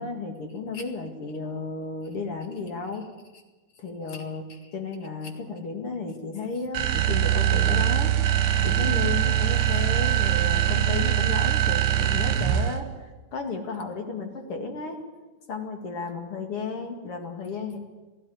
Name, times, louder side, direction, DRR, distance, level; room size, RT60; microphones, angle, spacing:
voice 1, 0.0-3.1 3.3-3.4 3.8-8.1 8.6-12.9 13.3-15.0 15.5-17.8, left 4 dB, 40° left, 4 dB, 2.3 m, -33 dB
sound 1, 6.7-12.9, right 11 dB, 90° right, 3.0 m, -23 dB
17.0 x 16.5 x 9.5 m, 1.2 s
omnidirectional pair, 4.9 m